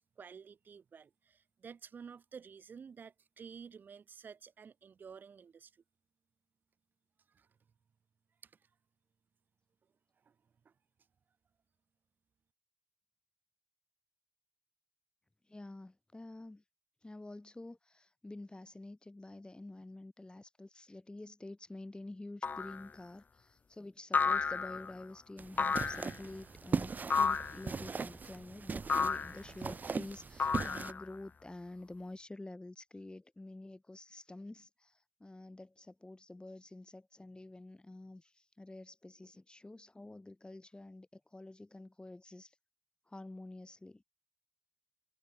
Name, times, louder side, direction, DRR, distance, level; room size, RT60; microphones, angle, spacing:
voice 1, 0.0-5.8 7.3-7.5 8.4-8.7 10.2-10.4 10.7-10.8, right 6 dB, 80° right, 5.2 m, -52 dB
voice 2, 15.4-16.6 17.0-42.6 43.1-44.0, left 2 dB, 30° left, 7.3 m, -49 dB
sound 1, 22.4-22.8 24.1-24.9 25.6-26.2 27.1-27.6 28.9-29.4 30.4-31.1, left 5 dB, 70° left, 1.4 m, -32 dB
sound 2, 25.4-30.9, right 4 dB, 65° right, 3.8 m, -39 dB
cardioid pair, 45°, 3 cm